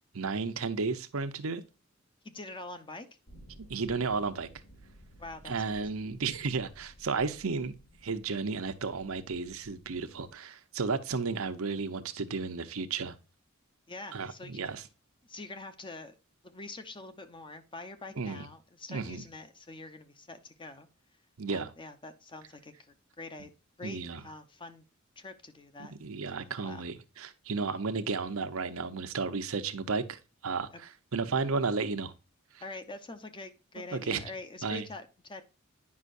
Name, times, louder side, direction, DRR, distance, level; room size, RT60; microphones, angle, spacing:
voice 1, 0.1-1.6 3.6-4.5 5.4-7.7 8.0-13.1 14.1-14.8 18.2-18.5 18.9-19.3 21.4-21.7 23.8-24.2 26.0-32.1 33.9-34.2 34.6-34.9, right 4 dB, 90° right, 0.8 m, -33 dB
voice 2, 2.2-3.1 5.2-5.8 13.9-14.6 15.3-16.1 16.4-20.9 21.5-22.7 23.2-23.5 23.8-24.8 25.2-26.8 32.6-35.4, left 2 dB, 25° left, 0.8 m, -45 dB
sound 1, 3.3-10.3, right 1 dB, 60° left, 2.1 m, -56 dB
9.6 x 5.5 x 2.5 m
head